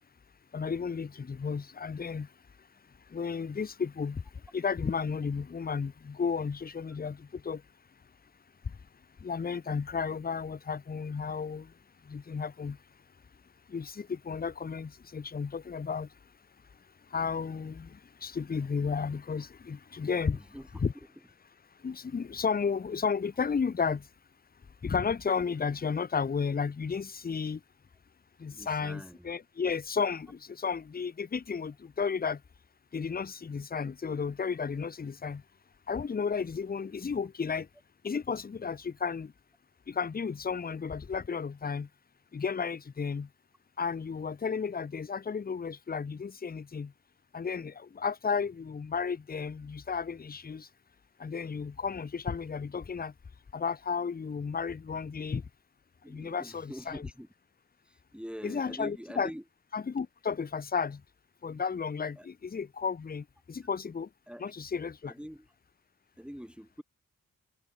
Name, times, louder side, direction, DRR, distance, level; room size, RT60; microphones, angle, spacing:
voice 1, 0.5-2.3 3.1-4.2 4.5-7.6 9.2-11.7 12.1-12.8 13.7-16.1 17.1-20.4 20.8-20.9 21.8-24.1 24.8-27.6 28.4-32.4 32.9-35.4 35.9-37.7 38.0-39.3 39.9-41.9 42.3-43.3 43.8-46.9 47.3-50.7 51.2-53.1 53.5-55.4 56.1-57.1 58.4-59.3 59.7-61.0 61.4-64.1 64.4-65.1, left 5 dB, 25° left, 0.6 m, -33 dB
voice 2, 20.3-20.7 28.5-29.3 56.0-57.3 57.9-59.4 62.2-62.3 64.3-64.4 65.1-65.5 66.2-66.8, equal, 5° right, 5.3 m, -44 dB
cardioid pair, 40°, 34 cm